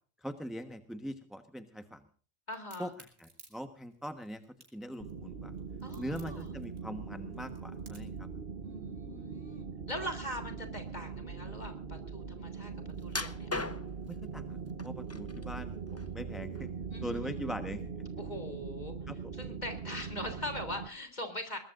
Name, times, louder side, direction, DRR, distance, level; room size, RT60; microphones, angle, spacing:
voice 1, 0.2-2.0 2.8-2.9 3.2-4.4 4.7-5.5 6.0-8.3 14.1-15.8 16.1-16.7 17.0-17.8 19.1-19.2, equal, ahead, 7 dB, 1.0 m, -41 dB
voice 2, 2.5-2.9 5.8-6.5 8.6-12.7 13.0-13.5 16.9-17.4 18.2-18.9 19.3-21.6, left 1 dB, 35° left, 6 dB, 3.3 m, -41 dB
Crack, 2.5-8.2, right 2 dB, 80° right, 3.9 m, -58 dB
sound 1, 5.0-20.9, right 5 dB, 50° right, 1.1 m, -41 dB
sound 2, 13.1-14.1 14.8-15.5 15.9-16.8 17.1-17.3 17.9-18.0, left 2 dB, 15° left, 0.6 m, -38 dB
22.0 x 20.0 x 2.5 m, 0.42 s
omnidirectional pair, 1.3 m